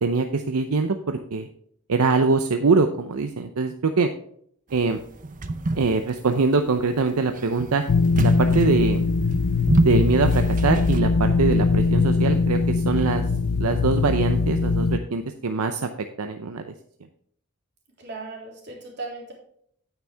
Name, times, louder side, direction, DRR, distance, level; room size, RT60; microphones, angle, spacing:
voice 1, 0.0-1.5 1.9-4.1 4.7-5.0 5.8-7.8 8.2-9.1 9.8-13.2 13.6-15.9 16.2-16.7, right 4 dB, 85° right, 7 dB, 0.6 m, -23 dB
sound 1, 4.7-11.0, right 2 dB, 40° right, 0.6 m, -27 dB
sound 2, 7.9-15.0, left 4 dB, 75° left, 0.5 m, -21 dB
voice 2, 18.0-19.3, right 3 dB, 55° right, -1 dB, 3.5 m, -37 dB
9.2 x 9.0 x 3.4 m, 0.64 s
head